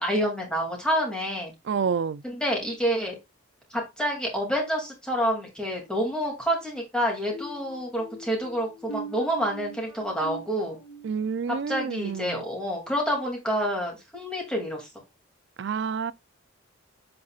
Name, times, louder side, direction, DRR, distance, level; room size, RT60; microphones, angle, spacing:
voice 1, 0.0-1.5 2.2-3.1 3.7-10.8 11.7-14.9, equal, 5° left, 2.5 m, -28 dB
voice 2, 1.7-2.2 11.0-12.4 15.6-16.1, right 6 dB, 55° right, 0.4 m, -28 dB
sound 1, 7.3-13.0 13.4-13.7 14.2-14.4, right 2 dB, 60° left, 1.4 m, -43 dB
7.6 x 5.5 x 2.4 m
head